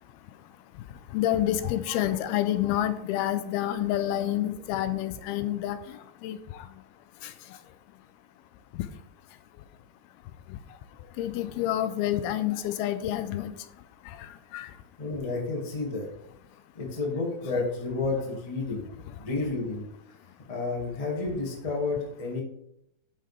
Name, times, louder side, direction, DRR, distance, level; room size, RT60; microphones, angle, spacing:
voice 1, 1.1-5.8 6.2-6.4 7.2-7.3 11.2-13.5 14.2-14.3 14.5-14.7, left 12 dB, 85° left, 11 dB, 2.5 m, -28 dB
voice 2, 15.0-16.1 16.7-18.8 19.2-19.8 20.5-22.4, left 3 dB, 25° left, -2 dB, 0.7 m, -30 dB
12.5 x 5.8 x 3.4 m, 0.79 s
omnidirectional pair, 4.4 m